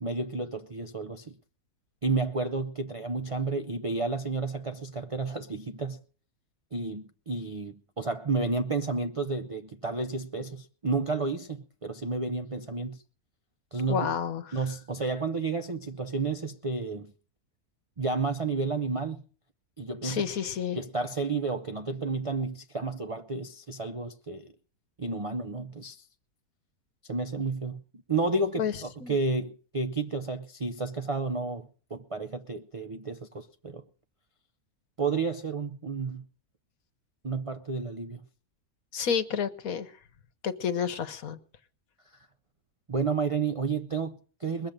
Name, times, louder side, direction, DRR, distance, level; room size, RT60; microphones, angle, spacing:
voice 1, 0.0-1.4 2.0-6.0 6.7-13.0 13.7-14.2 14.5-17.1 18.0-19.2 19.8-20.3 20.8-24.5 25.0-26.0 27.0-27.8 28.1-33.9 35.0-36.3 37.2-38.2 42.9-44.7, right 3 dB, 50° right, 0.4 m, -31 dB
voice 2, 13.9-14.4 20.0-20.8 28.6-28.7 29.0-29.1 38.9-39.9 40.4-41.4, left 7 dB, 70° left, 1.4 m, -30 dB
21.5 x 7.3 x 6.5 m
omnidirectional pair, 1.6 m